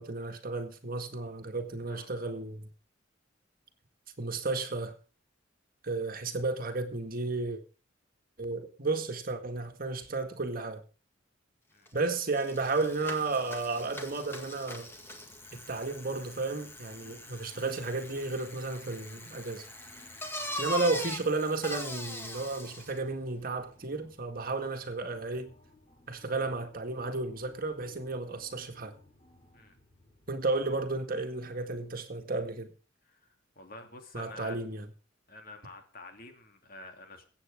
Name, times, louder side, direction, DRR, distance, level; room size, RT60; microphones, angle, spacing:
voice 1, 0.0-2.7 4.2-4.9 5.8-7.6 8.4-10.8 11.9-14.9 15.5-19.7 20.6-25.5 26.1-28.9 30.3-32.7 34.1-34.9, right 3 dB, 50° right, 1.9 m, -33 dB
Bicycle, 11.9-12.0 12.2-23.0, left 1 dB, 10° left, 2.1 m, -42 dB
sound 1, 12.6-30.9, left 1 dB, 30° left, 4.4 m, -61 dB
voice 2, 33.6-34.6 35.3-37.2, left 3 dB, 50° left, 2.8 m, -48 dB
22.5 x 8.7 x 3.6 m
head